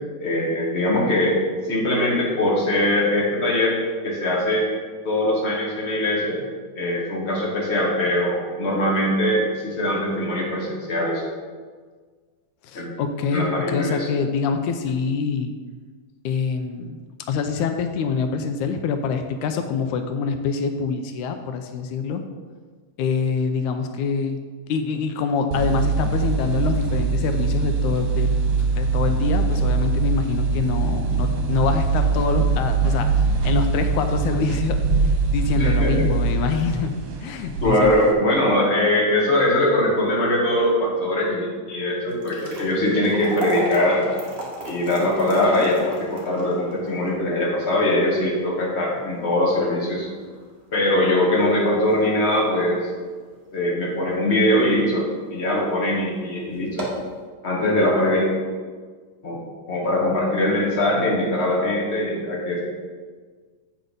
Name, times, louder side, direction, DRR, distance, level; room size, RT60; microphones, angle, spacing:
voice 1, 0.2-1.4 1.6-3.8 4.0-4.6 5.0-6.4 6.8-11.2 12.7-12.9 13.3-14.0 35.5-35.9 37.6-44.1 44.6-50.1 50.7-52.8 53.5-55.0 55.3-56.8 57.4-58.3 59.2-59.4 59.7-62.6, left 1 dB, 25° left, -4 dB, 1.9 m, -21 dB
voice 2, 12.6-15.6 16.2-17.0 17.3-22.2 23.0-24.4 24.7-34.8 35.0-37.9, left 5 dB, 85° left, 7 dB, 2.1 m, -25 dB
sound 1, 25.5-38.1, right 4 dB, 75° right, 2.2 m, -22 dB
sound 2, 42.0-54.3 54.7-54.8 55.5-55.7 56.0-56.1 56.6-57.1, right 1 dB, 30° right, 1.2 m, -36 dB
8.0 x 6.4 x 5.2 m, 1.5 s
omnidirectional pair, 3.4 m